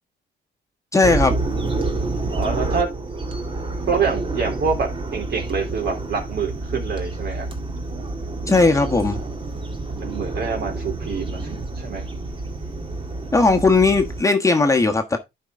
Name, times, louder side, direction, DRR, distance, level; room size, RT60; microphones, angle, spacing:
voice 1, 0.9-1.3 8.5-9.2 13.3-15.2, left 3 dB, 15° left, 1.4 m, -17 dB
sound 1, 1.0-14.2, right 2 dB, 25° right, 1.8 m, -28 dB
voice 2, 2.3-2.9 3.9-7.5 9.9-12.0, right 5 dB, 55° right, 3.5 m, -26 dB
11.0 x 4.9 x 3.7 m
cardioid pair, 90°, 20 cm